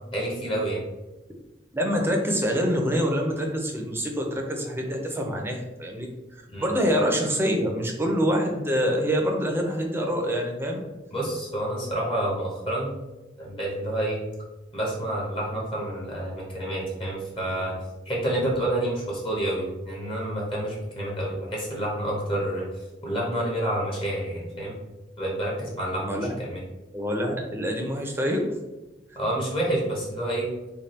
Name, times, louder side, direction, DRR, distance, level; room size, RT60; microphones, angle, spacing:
voice 1, 0.1-0.8 6.5-6.7 11.1-12.9 13.4-14.2 14.7-17.7 18.1-22.7 23.0-24.8 25.2-26.6 29.1-30.5, right 1 dB, 30° left, -3 dB, 0.9 m, -28 dB
voice 2, 1.7-6.1 6.3-10.8 25.9-26.3 26.9-28.4, equal, 15° right, 1 dB, 0.6 m, -26 dB
3.4 x 2.3 x 4.1 m, 1.1 s
head